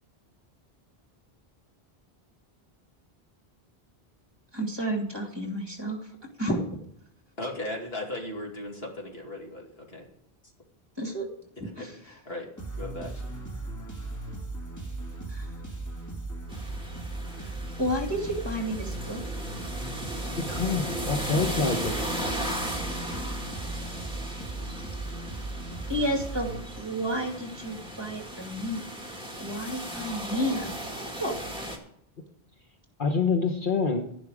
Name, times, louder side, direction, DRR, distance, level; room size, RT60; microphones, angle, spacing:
voice 1, 4.5-6.1 6.4-6.8 11.0-11.3 11.8-12.0 15.3-15.6 17.5-19.4 25.9-30.7 31.2-31.3 31.6-31.7, equal, 25° right, 2 dB, 2.4 m, -31 dB
voice 2, 7.4-10.1 11.8-12.5 12.7-13.2, left 1 dB, 75° left, 0 dB, 2.8 m, -37 dB
sound 1, 12.6-27.2, right 2 dB, 15° left, 2.2 m, -37 dB
sound 2, 16.5-31.8, equal, 5° right, 2.0 m, -36 dB
voice 3, 20.4-22.2 33.0-34.0, left 4 dB, 55° left, 3 dB, 1.3 m, -27 dB
11.5 x 11.0 x 4.9 m, 0.70 s
omnidirectional pair, 1.0 m